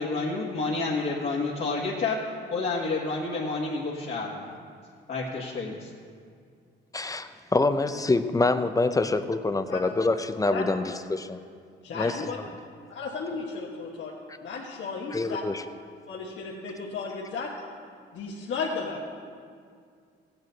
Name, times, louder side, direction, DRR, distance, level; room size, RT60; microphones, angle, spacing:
voice 1, 0.0-2.2 2.5-4.5 5.1-5.9, left 3 dB, 55° left, -6 dB, 1.5 m, -29 dB
voice 2, 6.9-11.4 11.9-12.3 14.3-14.4 15.1-15.6, left 3 dB, 15° left, 10 dB, 0.6 m, -26 dB
voice 3, 11.8-12.4 12.9-14.1 14.4-15.4 16.1-17.5 18.1-19.0, left 4 dB, 70° left, -4 dB, 1.4 m, -34 dB
15.0 x 9.0 x 4.1 m, 2.2 s
cardioid pair, 90°, 20 cm